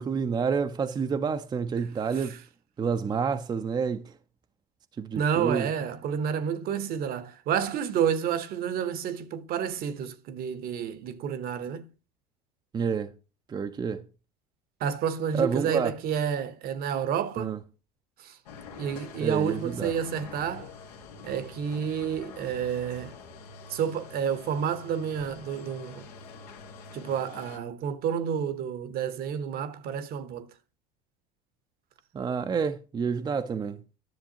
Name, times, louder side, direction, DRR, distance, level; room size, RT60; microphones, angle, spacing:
voice 1, 0.0-2.4 2.8-4.1 5.0-5.7 12.7-13.1 13.5-14.0 15.3-16.0 17.4-17.6 19.2-19.9 32.1-33.8, right 6 dB, 20° right, 0.5 m, -29 dB
voice 2, 5.2-11.9 14.8-17.6 18.2-18.4 18.8-20.7 21.2-23.2 23.7-26.0 26.9-30.5, right 8 dB, 50° right, 0.9 m, -30 dB
sound 1, 18.5-27.6, left 4 dB, 90° left, 1.4 m, -46 dB
10.5 x 6.7 x 2.9 m
supercardioid pair, 95°, 19 cm